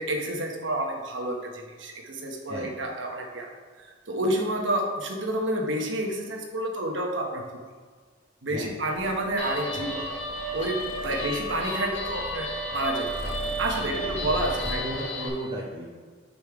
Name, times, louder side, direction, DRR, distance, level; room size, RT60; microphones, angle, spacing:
voice 1, 0.0-3.5 3.8-7.4 8.4-10.0 10.5-13.3 13.6-14.8, right 1 dB, 75° right, 2 dB, 1.1 m, -29 dB
voice 2, 8.5-8.8 10.0-10.1 11.2-11.3 13.9-14.3 14.6-16.0, right 1 dB, 30° right, -4 dB, 1.1 m, -35 dB
Purr, 8.9-14.8, right 1 dB, 50° right, 1.0 m, -40 dB
Guitar, 9.4-15.3, equal, 75° left, 1.8 m, -33 dB
6.9 x 5.3 x 4.7 m, 1.5 s
head